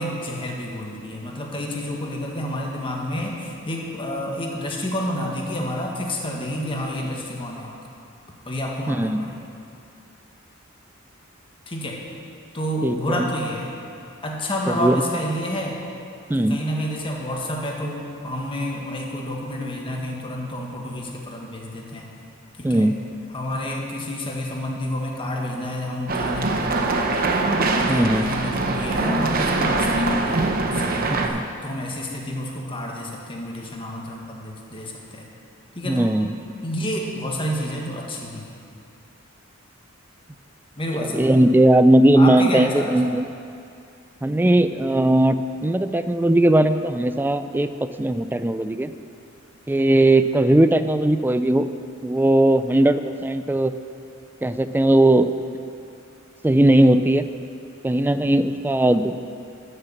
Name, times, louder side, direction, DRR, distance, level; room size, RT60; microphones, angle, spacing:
voice 1, 0.0-7.8 8.4-9.5 11.7-12.0 12.5-13.7 14.2-15.8 16.3-22.1 22.6-22.9 23.3-27.3 27.7-35.3 35.7-36.1 36.6-38.5 40.8-41.3 42.1-43.1, left 1 dB, 25° left, -1 dB, 1.5 m, -29 dB
voice 2, 8.9-9.2 12.8-13.3 14.7-15.0 16.3-16.6 22.6-23.0 27.9-28.3 31.1-31.4 35.8-36.3 41.1-43.3 44.2-47.7 48.0-48.9 49.7-51.7 52.0-53.7 54.4-55.3 56.4-57.3 57.8-59.1, right 1 dB, 10° right, 11 dB, 0.3 m, -18 dB
sound 1, 26.1-31.3, right 3 dB, 45° right, 0.9 m, -23 dB
13.0 x 6.8 x 7.2 m, 2.5 s
head